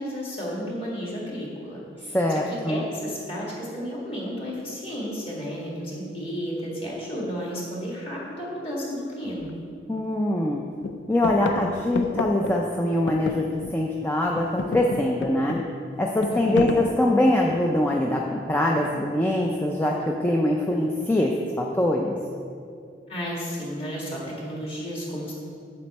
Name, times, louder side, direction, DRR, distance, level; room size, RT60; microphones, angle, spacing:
voice 1, 0.0-2.2 2.5-9.6 16.3-16.7 23.1-25.3, equal, 30° left, -4 dB, 1.9 m, -33 dB
voice 2, 2.1-2.9 9.9-10.6 11.1-13.4 13.7-15.6 16.0-21.3 21.6-22.1, left 1 dB, 10° left, -1 dB, 0.4 m, -23 dB
sound 1, 9.4-9.5 10.0-10.5 10.8-14.0 14.3-17.9 18.8-19.3, left 3 dB, 90° left, 0.4 m, -32 dB
7.7 x 7.7 x 4.2 m, 2.4 s
head